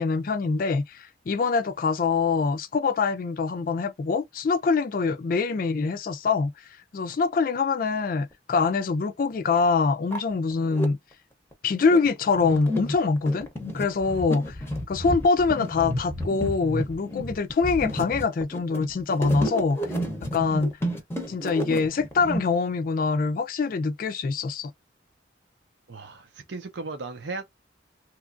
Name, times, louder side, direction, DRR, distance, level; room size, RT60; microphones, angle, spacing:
voice 1, 0.0-6.5 6.9-11.0 11.6-13.5 13.7-14.6 14.9-19.8 20.3-20.7 21.3-24.7, left 4 dB, 45° left, 0.3 m, -24 dB
sound 1, 9.5-9.6 9.9-10.9 11.5-22.4, equal, 15° left, 0.7 m, -31 dB
voice 2, 25.9-27.4, right 3 dB, 70° right, 0.5 m, -36 dB
2.9 x 2.3 x 2.5 m
head